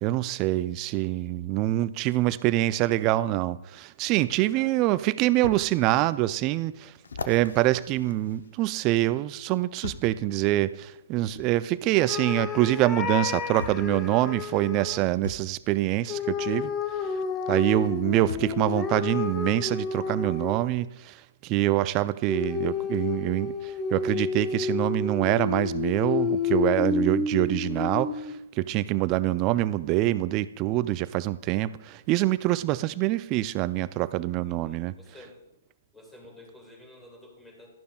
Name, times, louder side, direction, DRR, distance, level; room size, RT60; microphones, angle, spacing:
voice 1, 0.0-6.9 7.3-16.7 17.5-34.9, right 16 dB, 30° right, 16 dB, 0.4 m, -25 dB
voice 2, 0.7-1.3 4.5-4.8 34.4-35.4 35.9-37.7, left 1 dB, 5° left, 0 dB, 2.4 m, -51 dB
sound 1, 5.4-5.6 6.2-6.3 7.0-8.9 9.8-10.2 11.3-11.5 12.8-12.9 13.6-13.9 15.2-15.5 17.1-17.2 18.3-18.6 19.4-19.5, left 5 dB, 70° left, 0.7 m, -39 dB
sound 2, 12.1-15.0 16.1-20.9 22.3-28.4, left 6 dB, 20° left, 0.7 m, -30 dB
12.0 x 11.5 x 2.4 m, 0.88 s
figure-of-eight pair, 125°, 0 cm